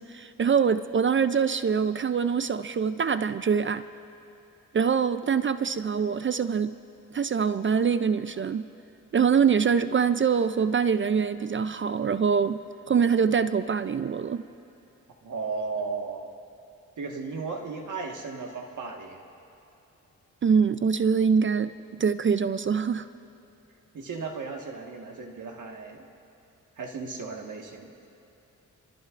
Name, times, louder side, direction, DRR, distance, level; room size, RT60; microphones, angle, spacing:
voice 1, 0.0-3.9 4.7-6.8 7.1-8.7 9.1-14.4 20.4-23.1, right 6 dB, 35° right, 12 dB, 0.4 m, -24 dB
voice 2, 15.2-16.3 17.0-19.2 23.9-26.0 26.8-27.9, right 4 dB, 65° right, 2 dB, 1.7 m, -35 dB
25.0 x 14.0 x 2.5 m, 2.9 s
cardioid pair, 65°, 33 cm